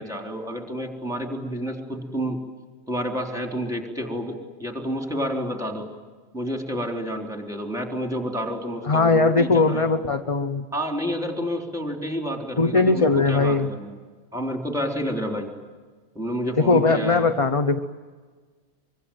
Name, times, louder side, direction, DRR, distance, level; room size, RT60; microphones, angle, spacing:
voice 1, 0.0-2.4 2.9-4.3 4.6-5.9 6.3-9.9 10.7-14.0 14.3-15.5 16.2-17.3, equal, ahead, 3 dB, 3.8 m, -29 dB
voice 2, 8.8-10.6 12.6-13.7 16.6-17.8, left 3 dB, 25° left, 7 dB, 0.9 m, -20 dB
25.0 x 24.0 x 9.2 m, 1.4 s
omnidirectional pair, 1.5 m